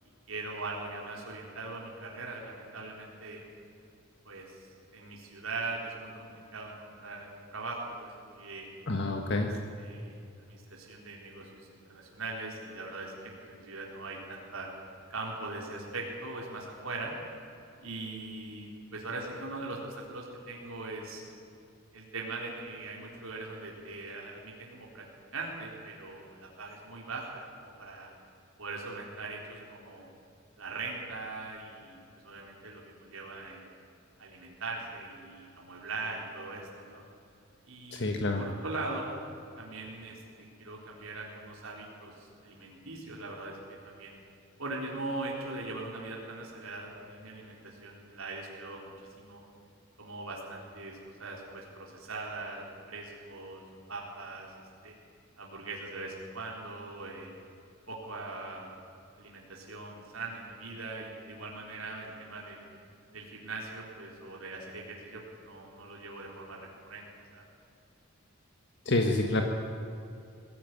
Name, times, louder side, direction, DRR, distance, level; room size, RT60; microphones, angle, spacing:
voice 1, 0.3-3.4 4.2-4.6 4.9-8.7 9.8-13.1 13.4-14.7 15.1-17.1 17.8-21.2 21.9-25.0 25.3-28.1 28.6-30.1 30.6-33.7 34.2-37.0 37.7-38.0 38.4-39.1 39.6-44.2 44.6-48.9 49.2-49.4 50.0-53.6 53.9-54.5 54.8-54.9 55.4-57.3 57.9-58.7 59.2-62.6 63.1-67.1 67.3-67.5, right 3 dB, 90° right, -2 dB, 4.0 m, -41 dB
voice 2, 8.9-9.5 37.9-38.4 68.8-69.4, left 2 dB, 60° left, 3 dB, 1.6 m, -28 dB
21.0 x 16.5 x 9.7 m, 2.5 s
head